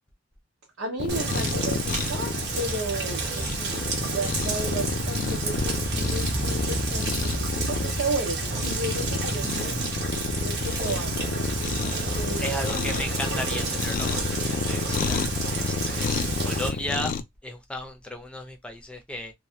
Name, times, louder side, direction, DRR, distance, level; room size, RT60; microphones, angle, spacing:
voice 1, 0.8-9.8 10.4-11.6 12.1-13.2 13.6-13.7 14.0-14.4, right 2 dB, 85° right, 0.9 m, -34 dB
Cat, 1.0-17.2, left 5 dB, 45° left, 0.3 m, -31 dB
Rain, 1.1-16.7, right 3 dB, 60° right, 0.9 m, -30 dB
voice 2, 12.4-16.1 16.4-17.1 17.4-19.3, left 1 dB, 5° left, 0.6 m, -35 dB
3.1 x 2.3 x 2.8 m
head